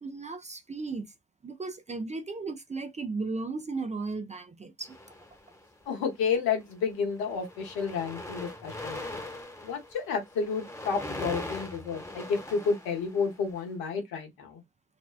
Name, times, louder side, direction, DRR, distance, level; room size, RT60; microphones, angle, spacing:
voice 1, 0.0-1.1 1.4-5.0, right 3 dB, 20° right, 0.5 m, -35 dB
sound 1, 4.8-5.8 6.6-6.8 7.1-13.6, left 1 dB, 5° left, 1.0 m, -41 dB
voice 2, 5.9-9.2 9.6-14.6, left 5 dB, 75° left, 0.9 m, -31 dB
2.6 x 2.1 x 2.3 m
hypercardioid pair, 40°, 37 cm